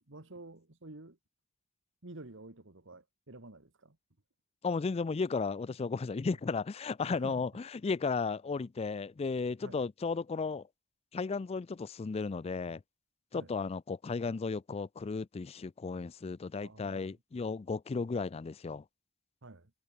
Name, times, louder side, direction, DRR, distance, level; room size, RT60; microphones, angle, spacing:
voice 1, 0.1-1.2 2.0-4.0 7.1-7.4 9.6-9.8 13.3-13.5 16.6-17.1 19.4-19.7, right 2 dB, 60° right, 1.8 m, -50 dB
voice 2, 4.6-10.7 11.1-12.8 13.3-18.8, left 4 dB, 30° left, 0.3 m, -34 dB
head